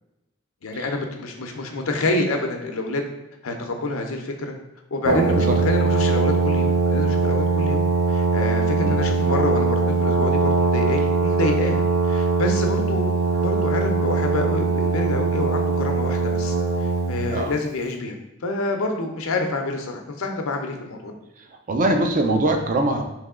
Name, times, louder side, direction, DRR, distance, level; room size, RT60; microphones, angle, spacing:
voice 1, 0.6-3.0 3.4-4.5 4.9-13.1 13.4-18.2 18.4-21.1, left 2 dB, 85° left, 4 dB, 0.6 m, -27 dB
Brass instrument, 5.0-17.3, right 4 dB, 85° right, 0.9 m, -21 dB
voice 2, 8.8-9.2 17.3-17.5 21.7-23.0, right 2 dB, 40° right, 4 dB, 0.5 m, -22 dB
3.3 x 3.0 x 3.6 m, 0.97 s
head